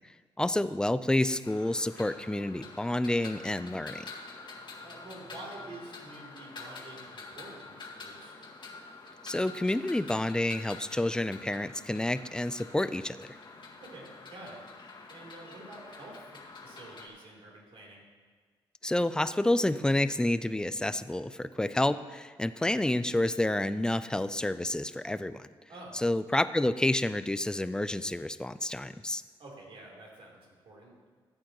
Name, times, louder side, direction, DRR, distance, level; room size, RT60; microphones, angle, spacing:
voice 1, 0.4-4.1 9.2-13.3 18.8-25.5 25.9-29.2, left 1 dB, 10° left, 13 dB, 0.5 m, -29 dB
sound 1, 1.4-17.1, left 3 dB, 55° left, 1.9 m, -47 dB
voice 2, 4.8-8.3 13.8-18.1 25.7-26.0 29.4-31.0, right 2 dB, 70° right, -3 dB, 3.5 m, -48 dB
15.5 x 8.7 x 3.1 m, 1.5 s
cardioid pair, 70°, 10 cm